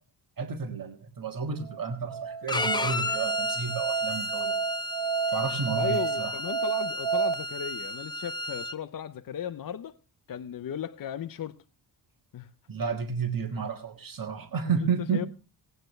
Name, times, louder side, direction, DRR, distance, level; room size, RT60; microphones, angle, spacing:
voice 1, 0.4-4.5 5.3-6.3 12.7-15.2, right 6 dB, 50° right, 1.6 m, -31 dB
Musical instrument, 1.7-7.3, right 6 dB, 85° right, 0.6 m, -31 dB
Bowed string instrument, 2.5-8.7, left 1 dB, 10° left, 0.5 m, -33 dB
voice 2, 5.7-9.9 10.3-11.6 12.3-12.5 14.7-15.3, left 9 dB, 55° left, 0.6 m, -36 dB
18.5 x 9.1 x 3.1 m
wide cardioid pair, 115°, 42 cm